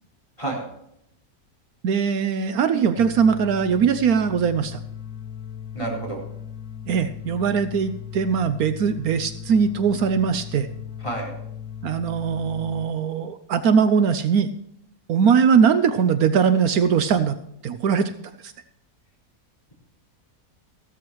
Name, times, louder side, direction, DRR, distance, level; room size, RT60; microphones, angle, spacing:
voice 1, 1.8-4.8 6.9-10.7 11.8-14.5 15.1-17.4 17.6-18.1 18.4-18.5, right 6 dB, 75° right, 11 dB, 1.1 m, -21 dB
sound 1, 3.0-12.9, left 9 dB, 70° left, 1.4 m, -37 dB
voice 2, 5.7-6.2 11.0-11.3, right 2 dB, 20° left, -2 dB, 4.2 m, -29 dB
15.0 x 13.0 x 3.0 m, 0.77 s
omnidirectional pair, 1.6 m